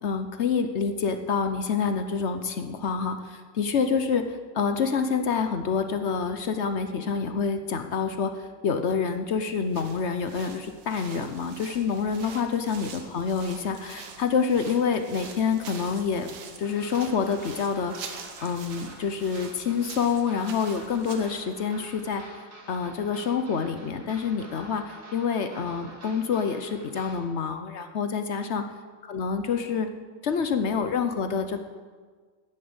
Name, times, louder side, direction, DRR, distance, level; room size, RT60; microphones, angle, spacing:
voice 1, 0.0-16.3 16.6-17.9 18.4-28.6 29.1-29.9 30.2-31.6, left 6 dB, 55° left, 8 dB, 0.8 m, -27 dB
sound 1, 9.5-21.4, right 5 dB, 70° right, 1.8 m, -45 dB
sound 2, 16.6-27.2, right 2 dB, 85° right, 3.0 m, -48 dB
10.0 x 9.8 x 7.9 m, 1.5 s
omnidirectional pair, 1.9 m